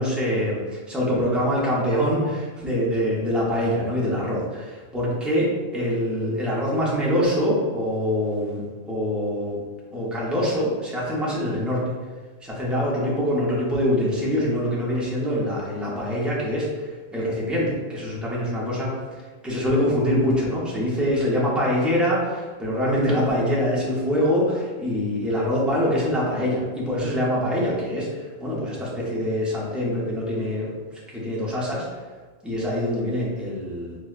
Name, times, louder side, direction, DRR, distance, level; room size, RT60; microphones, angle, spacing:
voice 1, 0.0-9.6 9.9-11.9 12.4-18.9 19.2-31.9 32.4-34.0, equal, ahead, -6 dB, 0.5 m, -24 dB
4.6 x 2.2 x 2.4 m, 1.4 s
omnidirectional pair, 1.1 m